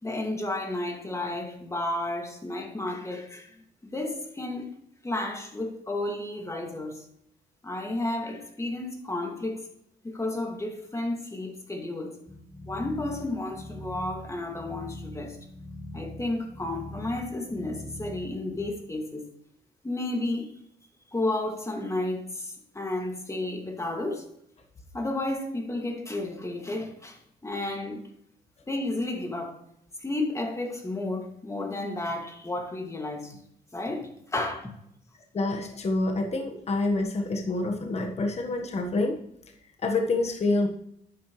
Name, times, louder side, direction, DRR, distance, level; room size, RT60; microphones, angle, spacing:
voice 1, 0.0-3.6 3.8-4.7 5.0-7.1 7.6-9.7 10.0-12.1 12.7-15.4 15.9-19.2 19.8-20.5 21.1-24.2 24.9-28.0 28.7-29.6 30.0-33.4 33.7-34.7, left 2 dB, 15° left, 2.2 m, -32 dB
sound 1, 12.3-18.7, left 1 dB, ahead, 1.1 m, -42 dB
voice 2, 35.3-39.2 39.8-40.7, left 2 dB, 40° left, 1.4 m, -27 dB
11.5 x 8.8 x 3.2 m
cardioid pair, 95°, 17 cm